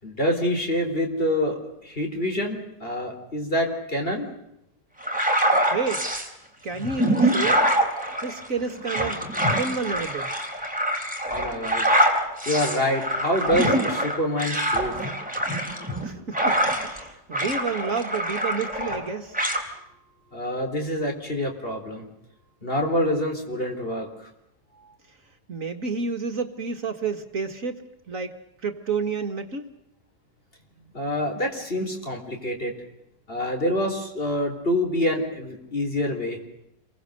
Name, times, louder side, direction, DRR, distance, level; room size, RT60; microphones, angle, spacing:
voice 1, 0.0-4.3 11.3-12.0 12.5-14.9 20.3-22.1 22.6-24.3 30.9-32.7 33.3-36.4, left 1 dB, 35° left, 2 dB, 4.4 m, -26 dB
sound 1, 5.0-6.3 6.8-17.0 17.3-19.1 19.3-19.6, right 1 dB, 5° right, 3.8 m, -25 dB
voice 2, 5.7-6.0 6.6-7.7 8.2-9.2 9.6-10.3 16.0-19.4 25.5-28.4 28.6-29.7, right 4 dB, 55° right, 6 dB, 2.0 m, -30 dB
28.5 x 23.0 x 6.7 m, 0.81 s
omnidirectional pair, 1.7 m